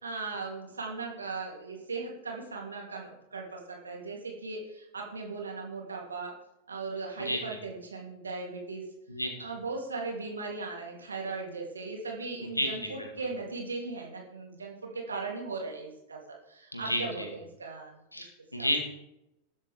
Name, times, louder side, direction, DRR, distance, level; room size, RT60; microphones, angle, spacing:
voice 1, 0.0-6.3 6.7-8.8 9.4-18.0 18.6-18.7, right 3 dB, 75° right, -1 dB, 2.8 m, -38 dB
voice 2, 7.2-7.6 9.1-9.3 12.6-13.1 16.7-17.3 18.1-18.8, equal, 85° left, 3 dB, 2.2 m, -31 dB
21.0 x 7.4 x 3.7 m, 0.89 s
figure-of-eight pair, 90°, 0 cm